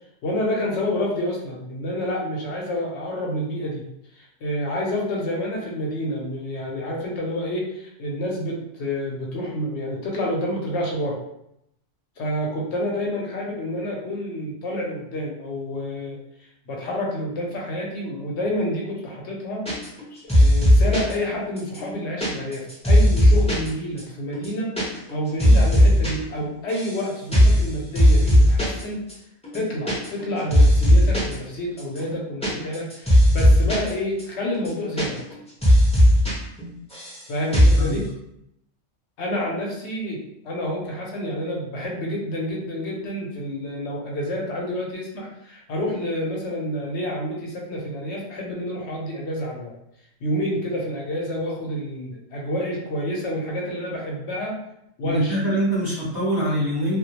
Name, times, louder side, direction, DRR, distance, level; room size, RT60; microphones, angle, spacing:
voice 1, 0.2-3.9 4.1-11.2 12.2-16.2 16.7-19.7 20.1-29.1 29.5-35.2 37.3-38.1 39.2-49.7 50.2-54.6 55.0-55.4, left 1 dB, 65° left, -1 dB, 0.8 m, -28 dB
sound 1, 19.6-20.0 20.3-21.1 21.6-23.7 24.0-24.1 24.3-24.8 25.1-26.1 26.4-27.0 27.3-27.6 27.9-28.8 29.1-29.2 29.4-30.2 30.5-31.3 31.8-33.9 34.2-34.3 34.5-35.3 35.6-36.3 36.6-37.2 37.5-37.8, equal, 10° left, 0.4 m, -17 dB
voice 2, 55.0-57.0, equal, 20° right, -9 dB, 0.8 m, -24 dB
2.2 x 2.1 x 2.8 m, 0.79 s
omnidirectional pair, 1.4 m